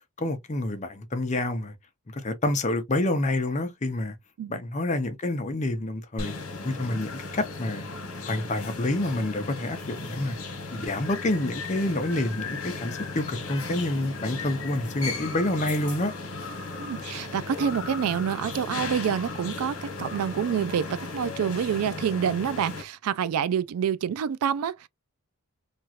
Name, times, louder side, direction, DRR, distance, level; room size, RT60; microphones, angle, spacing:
voice 1, 0.2-1.7 2.1-4.1 4.5-6.3 6.6-7.8 8.2-10.4 10.7-16.1, left 1 dB, 35° left, 0.6 m, -28 dB
sound 1, 6.2-22.8, left 3 dB, 75° left, 1.0 m, -36 dB
voice 2, 16.8-20.9 21.1-24.9, right 8 dB, 85° right, 0.3 m, -27 dB
3.0 x 2.4 x 2.7 m
head